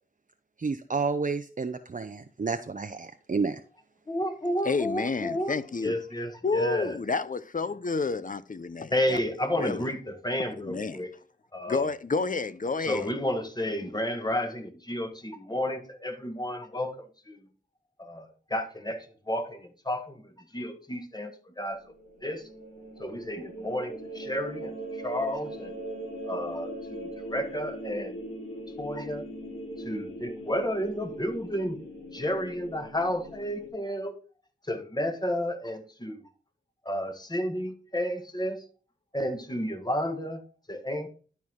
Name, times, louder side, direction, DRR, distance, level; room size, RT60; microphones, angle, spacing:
voice 1, 0.6-3.6, right 4 dB, 40° right, 0.7 m, -30 dB
voice 2, 4.1-7.0 8.9-11.1 11.5-11.9 12.8-17.4 18.0-21.8 22.2-22.4 23.0-25.7 26.2-28.2 28.8-29.2 29.8-31.8 32.1-34.2 34.7-36.2 36.8-38.6 39.1-40.4 40.7-41.1, equal, 20° left, 1.6 m, -32 dB
voice 3, 4.6-6.0 6.4-9.2 9.5-9.8 10.6-11.0 11.7-13.1, left 4 dB, 40° left, 0.7 m, -30 dB
sound 1, 21.8-33.7, right 1 dB, 85° left, 2.9 m, -40 dB
11.5 x 4.6 x 3.7 m
cardioid pair, 50°, 20 cm